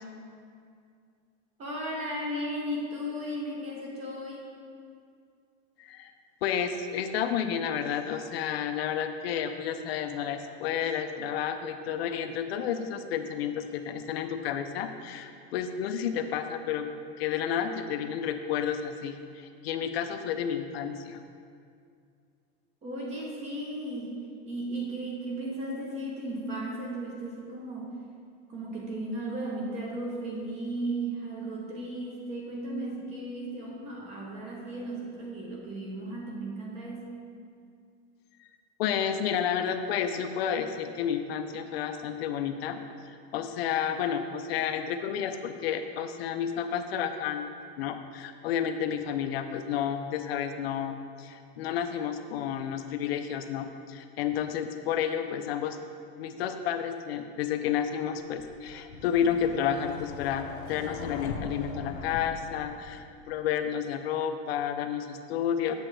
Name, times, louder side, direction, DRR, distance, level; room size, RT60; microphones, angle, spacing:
voice 1, 1.6-4.5 22.8-24.2 24.5-27.9 28.5-37.1, right 1 dB, 20° right, -1 dB, 0.8 m, -35 dB
voice 2, 5.8-6.1 6.4-21.2 38.8-42.8 43.1-55.8 56.2-65.8, left 8 dB, 65° left, 7 dB, 0.6 m, -31 dB
sound 1, 58.4-63.3, left 4 dB, 85° left, 0.9 m, -41 dB
7.7 x 7.3 x 3.3 m, 2.3 s
supercardioid pair, 175°, 33 cm